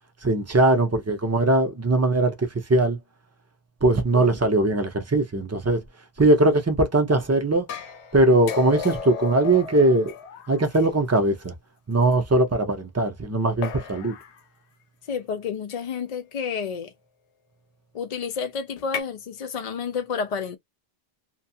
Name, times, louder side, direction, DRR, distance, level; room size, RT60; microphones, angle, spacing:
voice 1, 0.2-3.0 3.8-5.8 6.2-7.7 8.1-10.1 10.5-11.5 11.9-14.1, right 2 dB, 25° right, 0.3 m, -20 dB
sound 1, 7.7-11.2 12.1-12.2 13.6-14.4 15.7-16.0 18.8-19.0, left 7 dB, 85° left, 0.9 m, -35 dB
voice 2, 15.1-16.9 17.9-20.6, left 6 dB, 60° left, 0.4 m, -30 dB
2.6 x 2.3 x 2.7 m
omnidirectional pair, 1.1 m